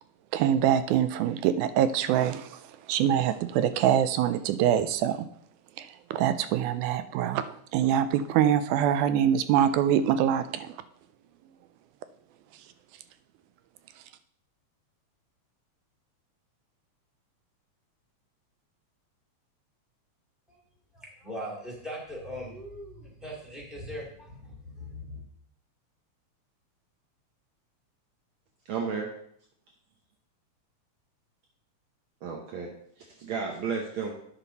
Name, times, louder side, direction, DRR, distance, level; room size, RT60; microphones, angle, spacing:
voice 1, 0.3-5.3 5.8-7.5 7.7-10.8, right 10 dB, 90° right, 12 dB, 2.0 m, -24 dB
voice 2, 20.9-25.2, equal, ahead, -4 dB, 2.2 m, -40 dB
voice 3, 28.6-29.1 32.2-34.2, right 5 dB, 70° right, 1 dB, 1.2 m, -33 dB
9.7 x 6.0 x 4.0 m, 0.66 s
omnidirectional pair, 3.4 m